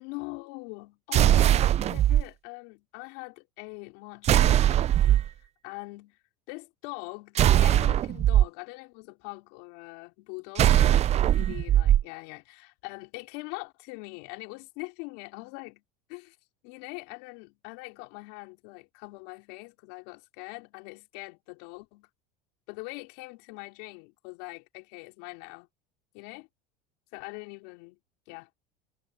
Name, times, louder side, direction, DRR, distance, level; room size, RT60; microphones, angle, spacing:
voice 1, 0.0-5.3 5.6-6.2 6.5-15.8 16.1-16.4 16.6-22.1 22.7-25.7 26.1-26.5 27.1-28.0 28.3-28.5, left 28 dB, 70° left, 4.3 m, -42 dB
sound 1, 1.1-2.2 4.2-5.3 7.4-8.4 10.6-12.0, right 12 dB, 30° right, 0.4 m, -20 dB
supercardioid pair, 100°, 21 cm